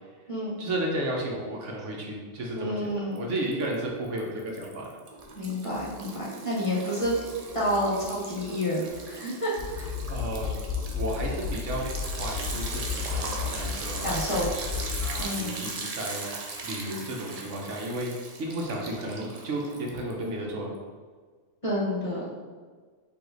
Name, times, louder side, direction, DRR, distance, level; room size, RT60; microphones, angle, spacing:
voice 1, 0.6-4.9 10.1-10.5 10.9-14.1 14.5-18.1 18.4-20.7, right 1 dB, 75° right, -1 dB, 1.1 m, -33 dB
voice 2, 2.5-3.2 5.3-7.1 7.5-9.9 14.0-14.5 15.2-15.7 21.6-22.3, left 1 dB, 30° left, -7 dB, 1.1 m, -29 dB
Liquid, 3.2-3.7 4.1-20.3, right 3 dB, 50° right, 0.4 m, -39 dB
sound 1, 9.6-15.2, left 6 dB, 75° left, 0.9 m, -33 dB
4.8 x 2.8 x 3.9 m, 1.5 s
omnidirectional pair, 1.3 m